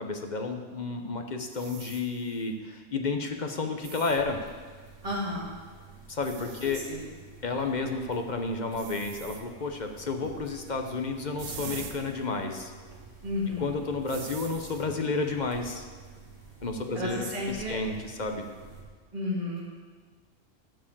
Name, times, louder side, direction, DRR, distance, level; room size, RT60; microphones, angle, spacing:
voice 1, 0.0-4.4 6.1-6.8 7.4-12.7 13.6-15.9 16.6-18.5, left 3 dB, 40° left, 4 dB, 0.9 m, -31 dB
sound 1, 0.7-0.8 1.5-2.5 3.8-4.2 5.8-5.9 6.2-7.0 8.3-8.4 8.7-9.5 11.4-12.2 12.6-12.7 14.1-14.9, right 6 dB, 70° right, 1.2 m, -43 dB
sound 2, 4.1-18.8, right 4 dB, 50° right, 2.9 m, -50 dB
voice 2, 5.0-5.5 6.6-7.0 13.2-13.7 16.9-17.8 19.1-19.6, left 2 dB, 25° right, -7 dB, 2.1 m, -32 dB
12.5 x 4.8 x 7.4 m, 1.5 s
omnidirectional pair, 1.4 m